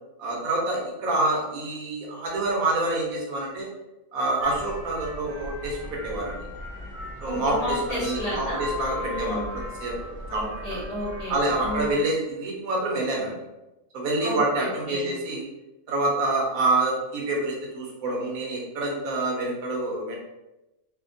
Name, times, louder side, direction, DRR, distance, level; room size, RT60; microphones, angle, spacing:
voice 1, 0.2-3.7 4.1-5.8 6.0-6.4 7.2-10.4 10.7-10.8 11.3-13.4 13.9-15.5 15.9-20.2, right 2 dB, 85° right, -2 dB, 1.3 m, -27 dB
sound 1, 4.4-11.9, left 1 dB, 55° right, 0.6 m, -37 dB
voice 2, 7.2-8.7 9.0-9.5 10.3-12.0 14.2-15.1, left 1 dB, 90° left, -6 dB, 1.3 m, -32 dB
3.2 x 2.1 x 2.5 m, 0.98 s
omnidirectional pair, 1.4 m